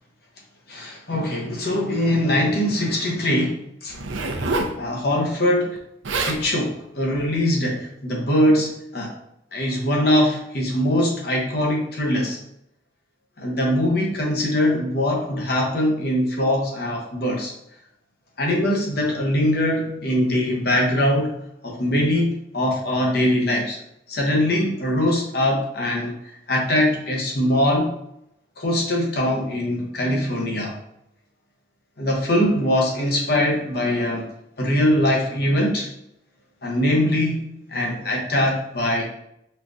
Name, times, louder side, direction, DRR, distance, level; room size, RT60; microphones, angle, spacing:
voice 1, 0.7-3.9 4.8-5.8 6.2-9.1 9.5-12.4 13.4-17.5 18.4-21.3 21.6-23.8 24.1-27.9 28.6-30.8 32.0-34.3 34.6-35.9 36.6-37.4 37.7-39.1, left 1 dB, 55° left, -1 dB, 0.9 m, -22 dB
Zipper (clothing), 3.9-4.8 5.8-5.9 6.0-6.4 7.1-7.4, right 2 dB, 90° right, 0.6 m, -26 dB
4.4 x 3.6 x 2.6 m, 0.77 s
head